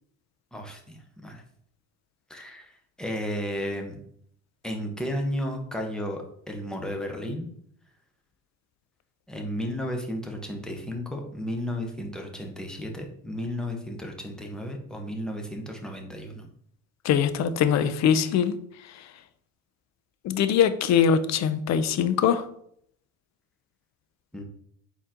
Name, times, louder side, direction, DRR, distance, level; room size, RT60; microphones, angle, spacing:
voice 1, 0.5-1.4 2.3-4.0 4.6-7.5 9.3-16.5 24.3-24.4, equal, ahead, 2 dB, 0.9 m, -33 dB
voice 2, 17.0-18.5 18.8-19.1 20.2-22.5, left 8 dB, 45° left, 12 dB, 0.5 m, -22 dB
4.3 x 2.9 x 3.7 m, 0.68 s
hypercardioid pair, 70°, 40 cm